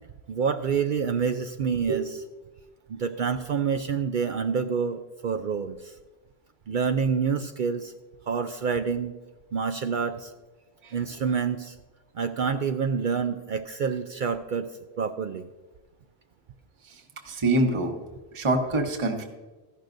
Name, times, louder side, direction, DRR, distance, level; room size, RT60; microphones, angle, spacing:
voice 1, 0.3-2.1 2.9-5.9 6.7-7.9 8.3-9.1 9.5-10.3 10.9-11.7 12.1-14.7 15.0-15.5, right 6 dB, 60° right, 7 dB, 0.6 m, -27 dB
voice 2, 16.8-18.0 18.3-19.2, right 2 dB, 30° right, 2 dB, 1.0 m, -26 dB
14.5 x 11.0 x 2.6 m, 1.2 s
omnidirectional pair, 1.1 m